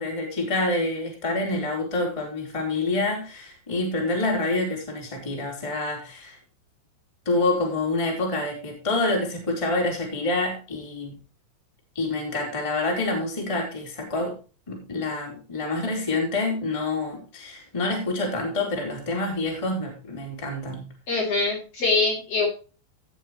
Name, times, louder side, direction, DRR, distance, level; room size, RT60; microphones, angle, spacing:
voice 1, 0.0-6.4 7.3-11.1 11.9-14.4 14.7-20.9, left 2 dB, 5° left, -1 dB, 3.6 m, -27 dB
voice 2, 21.1-22.5, left 3 dB, 35° left, -1 dB, 4.4 m, -23 dB
17.5 x 7.6 x 3.2 m, 0.34 s
omnidirectional pair, 5.4 m